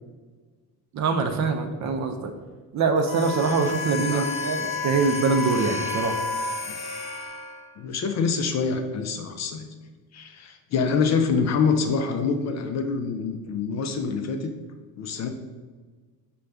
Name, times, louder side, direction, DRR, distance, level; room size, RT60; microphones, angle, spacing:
voice 1, 0.9-2.3 2.7-6.2, right 4 dB, 45° right, 6 dB, 0.5 m, -24 dB
sound 1, 3.0-7.7, left 5 dB, 75° left, 0.8 m, -34 dB
Wind instrument woodwind instrument, 3.0-6.6, left 1 dB, 80° right, 0.8 m, -32 dB
voice 2, 4.0-4.3 6.6-6.8 7.8-9.7 10.1-14.5 15.0-15.3, left 5 dB, 45° left, 5 dB, 0.4 m, -26 dB
5.0 x 2.3 x 3.3 m, 1.4 s
cardioid pair, 115°, 38 cm